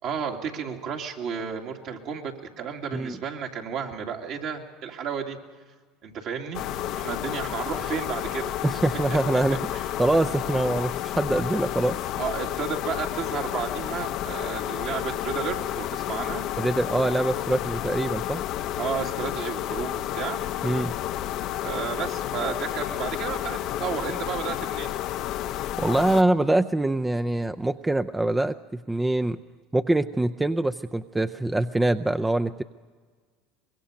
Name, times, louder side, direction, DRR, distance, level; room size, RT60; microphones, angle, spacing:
voice 1, 0.0-5.4 6.0-6.6 6.9-8.8 9.7-9.8 12.2-16.4 18.8-20.4 21.6-24.9, right 7 dB, 60° right, 1 dB, 2.6 m, -32 dB
sound 1, 6.5-26.2, left 12 dB, 60° left, 0.7 m, -31 dB
voice 2, 8.6-9.6 10.0-12.0 16.6-18.4 20.6-21.0 25.8-29.4 29.7-32.6, right 2 dB, 10° right, 9 dB, 0.5 m, -24 dB
24.5 x 22.0 x 5.2 m, 1.5 s
supercardioid pair, 95°, 0 cm